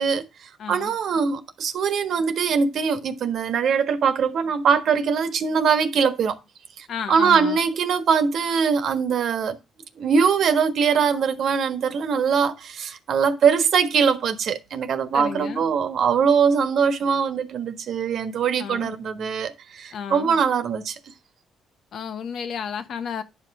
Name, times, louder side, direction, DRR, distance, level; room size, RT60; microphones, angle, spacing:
voice 1, 0.0-6.4 6.8-9.6 10.0-21.0, right 6 dB, 65° right, 1.4 m, -22 dB
voice 2, 0.6-0.9 6.9-7.6 15.1-15.6 18.6-19.0 19.9-20.4 21.9-23.2, left 7 dB, 65° left, 1.1 m, -32 dB
10.5 x 5.6 x 4.8 m
cardioid pair, 90°, 0 cm